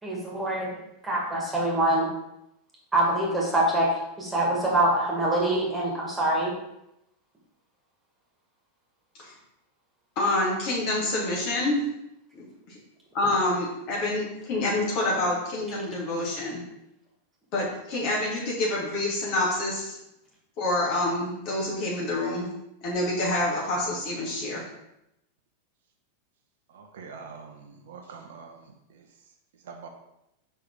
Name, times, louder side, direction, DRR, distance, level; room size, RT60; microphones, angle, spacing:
voice 1, 0.0-0.7 1.0-2.1 2.9-3.9 4.2-6.5, right 1 dB, 10° right, -4 dB, 2.3 m, -24 dB
voice 2, 10.2-11.8 12.3-12.8 13.1-16.6 17.5-20.0 20.6-22.5 22.8-24.6, left 2 dB, 45° left, -4 dB, 2.4 m, -27 dB
voice 3, 26.7-27.5 27.9-28.6 29.7-29.9, right 5 dB, 60° right, 3 dB, 0.8 m, -43 dB
5.5 x 4.8 x 4.0 m, 0.85 s
figure-of-eight pair, 90°, 0 cm